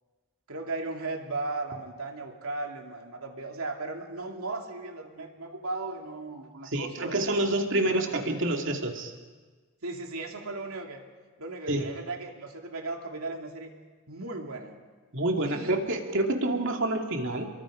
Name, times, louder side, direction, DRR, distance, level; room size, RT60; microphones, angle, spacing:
voice 1, 0.5-8.5 9.8-11.0 11.4-13.7 14.1-14.8 15.4-15.8, right 3 dB, 80° right, 2 dB, 2.7 m, -37 dB
voice 2, 6.6-9.1 11.7-11.9 15.1-17.5, right 1 dB, 60° right, 3 dB, 2.5 m, -28 dB
29.5 x 22.5 x 5.1 m, 1.4 s
head